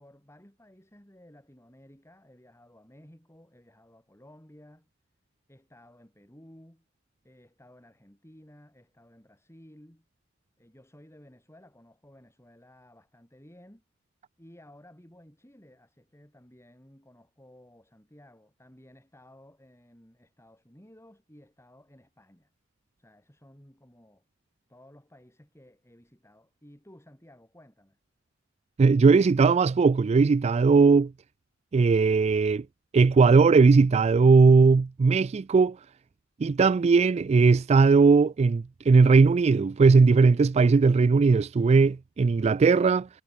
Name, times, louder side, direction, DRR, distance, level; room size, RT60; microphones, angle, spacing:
voice 1, 0.0-4.9 5.5-6.9 7.2-10.1 10.6-13.8 14.4-22.5 23.0-24.2 24.7-28.0, left 1 dB, 15° left, 5.5 m, -55 dB
voice 2, 28.8-31.1 31.7-32.6 32.9-35.8 36.4-43.1, right 4 dB, 35° right, 0.3 m, -19 dB
head